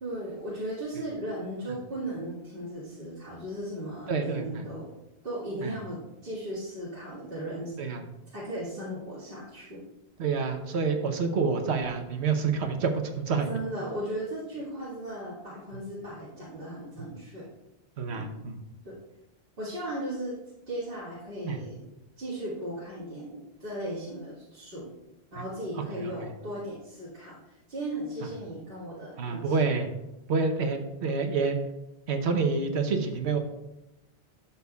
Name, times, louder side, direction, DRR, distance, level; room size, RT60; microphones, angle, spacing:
voice 1, 0.0-4.9 5.2-7.8 8.3-9.9 10.7-10.8 13.5-17.5 18.1-18.3 18.8-19.0 19.6-20.3 20.7-21.8 22.2-24.9 25.3-29.6, right 1 dB, 60° right, -9 dB, 2.2 m, -36 dB
voice 2, 4.1-4.6 5.6-5.7 7.8-8.0 10.2-13.5 18.0-18.6 21.4-21.6 26.0-26.1 29.2-29.9 30.3-31.6 32.1-33.4, right 4 dB, 80° right, 6 dB, 1.2 m, -28 dB
12.0 x 6.9 x 2.3 m, 0.95 s
omnidirectional pair, 1.1 m